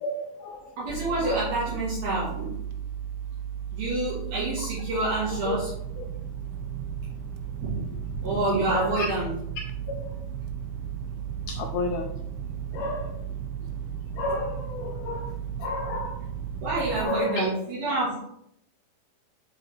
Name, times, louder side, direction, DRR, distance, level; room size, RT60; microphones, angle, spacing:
voice 1, 0.0-0.8 1.2-1.4 4.9-5.0 5.5-5.6 6.0-6.1 8.7-9.1 10.0-10.1 11.5-12.1 12.7-13.1 14.2-15.3 15.6-16.2 17.0-17.5, left 2 dB, 85° left, 2 dB, 2.2 m, -31 dB
voice 2, 0.8-2.6 3.7-5.7 7.6-9.3 12.7-12.8 16.6-18.2, right 2 dB, 65° right, -7 dB, 3.1 m, -28 dB
sound 1, 0.9-17.1, right 8 dB, 80° right, 2.2 m, -35 dB
6.7 x 5.5 x 3.2 m, 0.75 s
omnidirectional pair, 4.9 m